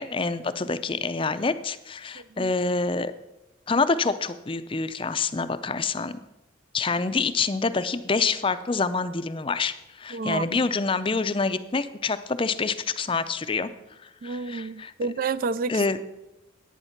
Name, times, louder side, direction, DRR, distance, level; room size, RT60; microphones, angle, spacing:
voice 1, 0.0-3.1 3.7-6.1 6.7-13.7 14.0-14.9 15.7-16.0, left 4 dB, 25° left, 12 dB, 0.5 m, -27 dB
voice 2, 2.2-2.5 10.1-10.6 14.2-15.8, right 4 dB, 45° right, 16 dB, 0.3 m, -30 dB
11.0 x 9.0 x 5.8 m, 0.95 s
head